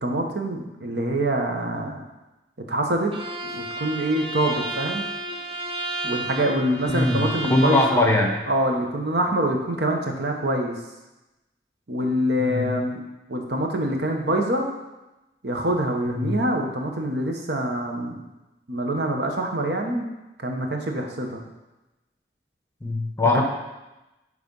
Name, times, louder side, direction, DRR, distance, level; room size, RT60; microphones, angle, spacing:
voice 1, 0.0-2.1 2.6-3.1 3.4-5.1 6.0-8.1 8.5-10.7 11.9-13.0 13.3-14.7 15.4-18.2 18.7-20.1 20.4-21.4 23.3-23.4, right 1 dB, 75° right, 2 dB, 1.1 m, -25 dB
Bowed string instrument, 3.1-8.1, right 1 dB, 30° right, 0.6 m, -32 dB
voice 2, 6.9-8.4 12.4-12.7 16.1-16.4 22.8-23.4, left 2 dB, 15° left, 2 dB, 0.8 m, -22 dB
9.8 x 3.4 x 5.4 m, 1.0 s
head